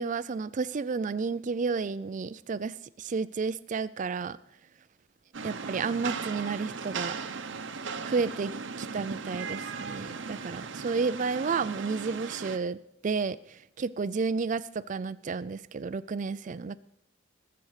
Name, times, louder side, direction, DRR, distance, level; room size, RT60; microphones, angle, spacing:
voice 1, 0.0-4.4 5.4-7.1 8.0-12.8 13.0-13.4 13.8-16.8, right 4 dB, 40° right, 16 dB, 0.4 m, -31 dB
Rain, 5.3-12.6, right 5 dB, 65° right, 0.8 m, -37 dB
20.5 x 7.8 x 4.9 m, 0.76 s
head